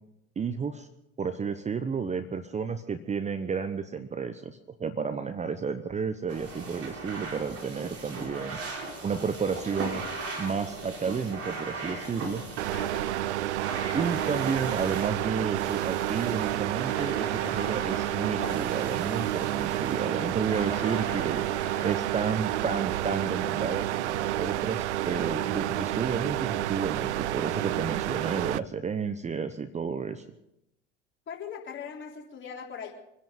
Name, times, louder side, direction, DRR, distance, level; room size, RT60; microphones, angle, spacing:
voice 1, 0.4-0.9 1.2-8.6 9.0-10.0 10.4-12.4 13.9-21.4 21.8-30.2, right 6 dB, 20° right, 10 dB, 0.9 m, -31 dB
sound 1, 6.3-22.0, right 3 dB, 40° right, 4.1 m, -38 dB
sound 2, 12.6-28.6, right 14 dB, 80° right, 0.5 m, -30 dB
voice 2, 31.3-32.9, left 7 dB, 35° left, -1 dB, 3.7 m, -40 dB
25.0 x 10.5 x 5.3 m, 0.84 s
hypercardioid pair, 75°, 34 cm